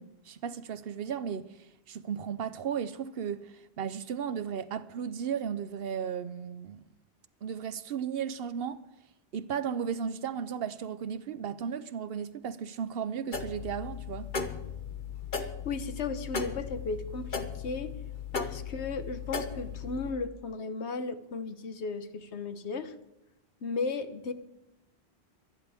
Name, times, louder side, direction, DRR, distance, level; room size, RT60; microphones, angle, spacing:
voice 1, 0.0-6.8 7.4-8.8 9.3-14.3, right 7 dB, 65° right, 0.8 m, -35 dB
sound 1, 13.3-20.1, left 5 dB, 50° left, 1.2 m, -37 dB
voice 2, 15.4-17.9 18.3-22.9 23.6-24.3, left 4 dB, 90° left, 1.2 m, -35 dB
24.5 x 9.6 x 3.5 m
omnidirectional pair, 1.1 m